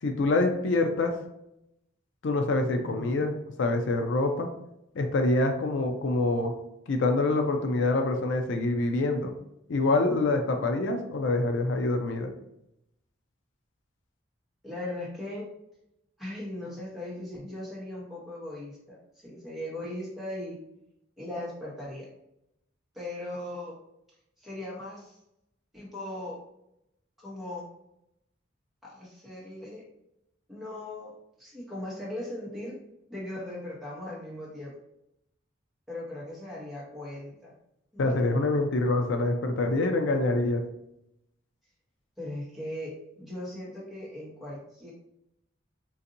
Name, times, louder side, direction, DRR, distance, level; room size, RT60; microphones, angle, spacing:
voice 1, 0.0-1.1 2.2-3.3 3.6-4.5 5.0-6.5 6.9-9.3 9.7-12.3 38.0-40.6, left 2 dB, 75° left, 5 dB, 0.4 m, -25 dB
voice 2, 2.7-3.2 14.6-15.5 16.2-20.6 21.2-22.1 22.9-23.8 24.4-25.2 25.7-26.4 27.2-27.7 28.8-29.8 30.5-32.8 33.1-34.7 35.9-37.5 37.9-38.4 42.2-44.9, left 1 dB, ahead, -7 dB, 1.1 m, -38 dB
3.9 x 2.6 x 2.7 m, 0.81 s
head